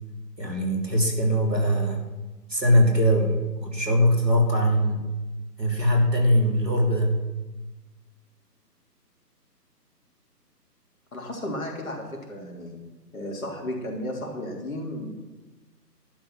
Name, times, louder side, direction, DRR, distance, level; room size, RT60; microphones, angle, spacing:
voice 1, 0.4-2.1 2.5-5.0 5.6-7.2, equal, 85° right, 0 dB, 3.3 m, -21 dB
voice 2, 11.1-12.8 13.1-15.1, left 1 dB, 55° left, 0 dB, 3.3 m, -33 dB
11.5 x 10.0 x 5.9 m, 1.2 s
figure-of-eight pair, 145°, 49 cm